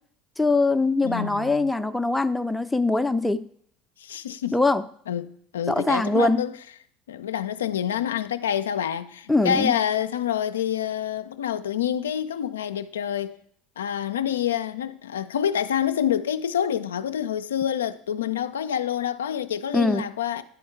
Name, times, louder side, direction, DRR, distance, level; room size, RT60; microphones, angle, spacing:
voice 1, 0.4-3.5 4.5-4.8 5.7-6.5 9.3-9.7 19.7-20.1, left 2 dB, 5° left, 0.4 m, -22 dB
voice 2, 1.0-1.7 4.0-4.6 5.1-6.5 7.1-13.4 13.8-20.4, left 9 dB, 85° left, 0.3 m, -27 dB
10.0 x 3.5 x 4.5 m
hypercardioid pair, 75°, 0 cm